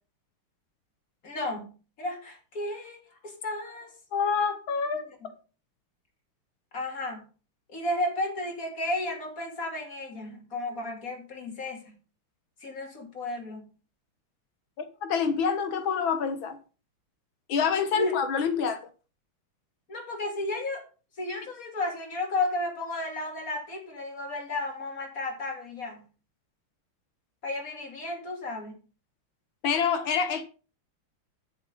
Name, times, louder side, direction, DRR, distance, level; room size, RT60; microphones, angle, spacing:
voice 1, 1.2-3.9 4.9-5.3 6.7-7.3 7.7-11.9 12.6-13.7 18.0-18.2 19.9-20.8 21.2-26.0 27.4-28.8, left 2 dB, 40° left, 3.1 m, -33 dB
voice 2, 4.1-5.1 15.0-16.6 17.5-18.8 29.6-30.4, left 6 dB, 65° left, 2.0 m, -26 dB
10.0 x 7.1 x 5.4 m
omnidirectional pair, 2.4 m